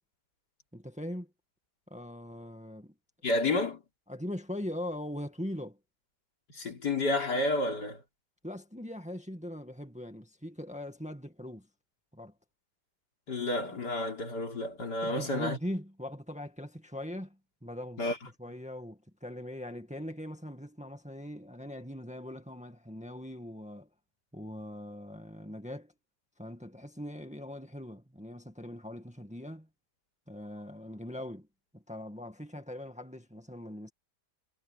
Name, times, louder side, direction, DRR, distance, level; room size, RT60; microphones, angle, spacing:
voice 1, 0.7-1.3 1.9-2.9 4.1-5.8 8.4-11.7 12.1-12.3 15.0-18.0 18.4-23.9 24.3-25.9 26.4-29.7 30.3-31.5 31.7-33.9, left 1 dB, 5° right, 1.9 m, -41 dB
voice 2, 3.2-3.8 6.5-8.0 13.3-15.6 18.0-18.2, left 2 dB, 80° left, 4.4 m, -30 dB
omnidirectional pair, 1.8 m